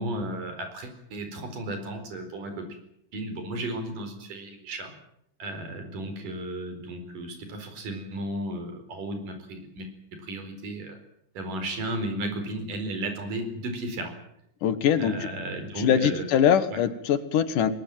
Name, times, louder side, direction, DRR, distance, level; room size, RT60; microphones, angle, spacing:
voice 1, 0.0-2.8 3.1-4.9 5.4-9.9 10.2-11.0 11.4-14.2 15.0-16.3 16.7-16.8, right 1 dB, 80° right, 7 dB, 6.0 m, -34 dB
voice 2, 14.6-15.1 15.8-17.7, left 9 dB, 75° left, 12 dB, 3.0 m, -22 dB
21.5 x 21.0 x 9.2 m, 0.78 s
omnidirectional pair, 3.7 m